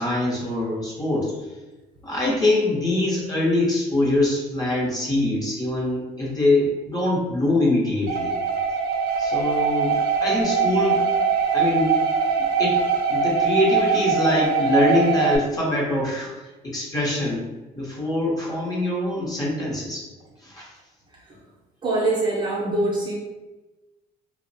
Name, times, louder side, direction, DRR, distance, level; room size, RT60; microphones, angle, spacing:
voice 1, 0.0-1.3 2.0-8.3 9.2-11.1 11.5-12.0 12.6-12.8 13.1-16.3 16.6-17.5 17.7-20.1 20.4-20.7, left 1 dB, 20° left, -5 dB, 0.9 m, -23 dB
sound 1, 8.1-15.4, right 5 dB, 75° right, 0.5 m, -22 dB
voice 2, 21.8-23.1, right 2 dB, 30° right, -5 dB, 0.7 m, -23 dB
2.5 x 2.1 x 2.6 m, 1.1 s
cardioid pair, 110°, 17 cm